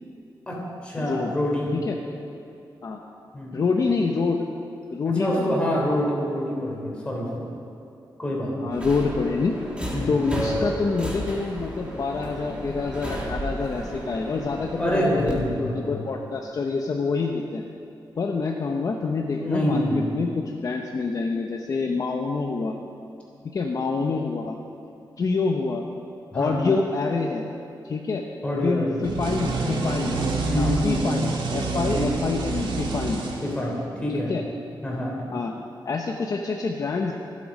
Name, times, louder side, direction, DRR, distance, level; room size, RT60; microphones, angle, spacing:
voice 1, 0.5-1.7 3.3-3.6 5.0-7.4 8.2-8.7 9.9-10.2 14.8-16.0 19.4-20.2 26.3-26.6 28.4-29.0 30.0-30.8 31.9-32.1 33.4-34.3 34.8-35.2, equal, 15° left, -3 dB, 3.6 m, -26 dB
voice 2, 1.0-1.3 1.7-2.0 2.8-3.0 3.5-4.4 4.9-5.6 8.6-9.5 10.1-17.6 18.2-19.8 20.1-22.7 23.4-24.5 25.2-25.8 26.3-27.4 27.8-28.2 28.6-30.1 30.6-33.2 34.1-34.4 35.3-35.5 35.8-37.1, left 4 dB, 45° left, 2 dB, 0.8 m, -26 dB
Subway metro underground, 8.7-15.3, equal, 15° right, 2.1 m, -32 dB
sound 1, 29.0-33.9, right 3 dB, 75° right, 2.0 m, -27 dB
25.0 x 8.5 x 5.4 m, 2.8 s
wide cardioid pair, 175°, 8 cm